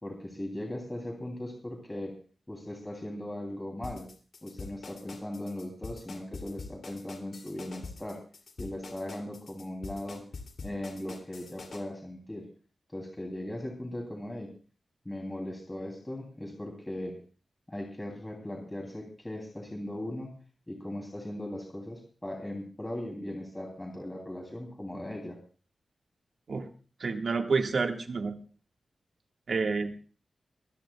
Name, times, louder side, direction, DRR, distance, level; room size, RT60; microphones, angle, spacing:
voice 1, 0.0-2.1 2.5-4.1 4.4-8.2 8.6-10.2 10.6-12.5 12.9-14.5 15.0-17.1 17.7-20.3 20.7-25.4, left 1 dB, 15° left, 0 dB, 3.0 m, -38 dB
sound 1, 3.8-11.8, left 4 dB, 65° left, 2.7 m, -44 dB
voice 2, 27.0-28.4 29.5-30.0, right 4 dB, 60° right, 4 dB, 1.7 m, -29 dB
23.0 x 16.0 x 2.3 m, 0.39 s
wide cardioid pair, 105°, 0 cm